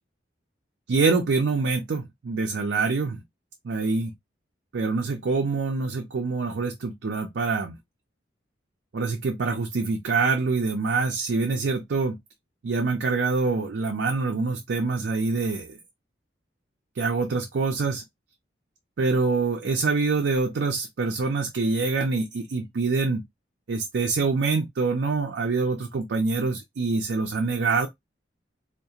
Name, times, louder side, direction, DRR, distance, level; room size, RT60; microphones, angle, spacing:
voice 1, 0.9-3.2 3.6-4.1 4.7-7.7 8.9-12.2 12.6-15.8 17.0-18.0 19.0-23.2 23.7-27.9, right 4 dB, 65° right, 0.4 m, -25 dB
2.4 x 2.0 x 2.7 m
head